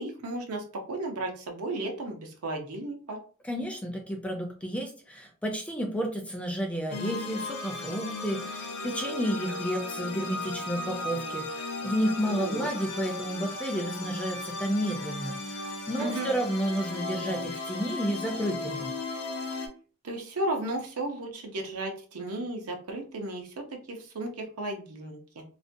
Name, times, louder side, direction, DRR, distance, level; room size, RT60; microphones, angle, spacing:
voice 1, 0.0-3.2 12.2-12.7 16.0-16.3 20.0-25.4, right 1 dB, 85° right, 2 dB, 0.6 m, -34 dB
voice 2, 3.4-18.9, equal, 5° left, 2 dB, 0.4 m, -31 dB
sound 1, 6.9-19.7, left 2 dB, 80° left, 0.5 m, -36 dB
2.4 x 2.1 x 2.5 m, 0.40 s
head